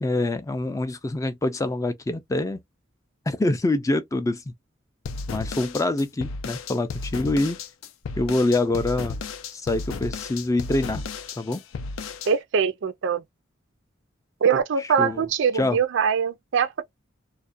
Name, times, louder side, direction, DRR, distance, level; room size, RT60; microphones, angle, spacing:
voice 1, 0.0-2.6 3.3-4.5 5.3-7.6 8.2-9.2 9.5-11.0 11.4-11.6 15.0-15.2 15.5-15.8, left 2 dB, 15° left, 0.3 m, -25 dB
sound 1, 5.0-12.3, left 4 dB, 85° left, 0.4 m, -34 dB
voice 2, 12.3-13.2 14.4-16.8, right 6 dB, 65° right, 0.4 m, -23 dB
2.3 x 2.1 x 2.5 m
head